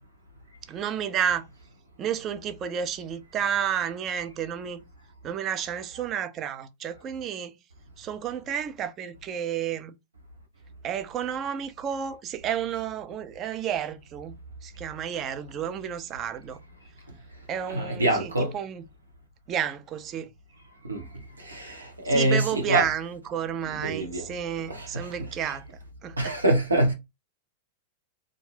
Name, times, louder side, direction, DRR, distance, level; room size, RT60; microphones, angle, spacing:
voice 1, 0.7-1.5 2.0-4.8 5.2-7.6 8.0-10.0 10.8-16.6 17.5-18.8 19.5-20.3 22.1-25.6 26.0-26.4, right 9 dB, 35° right, 0.4 m, -31 dB
voice 2, 17.6-18.5 20.8-21.0 21.4-22.9 23.6-24.3 24.7-25.6 26.2-26.9, right 1 dB, 90° right, 0.9 m, -26 dB
2.5 x 2.1 x 3.3 m
figure-of-eight pair, 100°, 0 cm